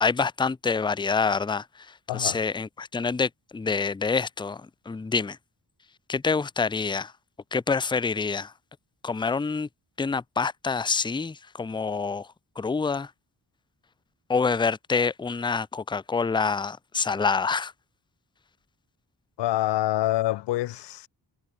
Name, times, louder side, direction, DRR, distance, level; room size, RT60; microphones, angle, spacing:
voice 1, 0.0-5.4 6.1-7.1 7.5-8.5 9.0-9.7 10.0-12.3 12.6-13.1 14.3-17.7, left 5 dB, 10° left, 0.4 m, -27 dB
voice 2, 2.1-2.4 19.4-21.1, left 15 dB, 80° left, 0.5 m, -26 dB
wide cardioid pair, 165°, 41 cm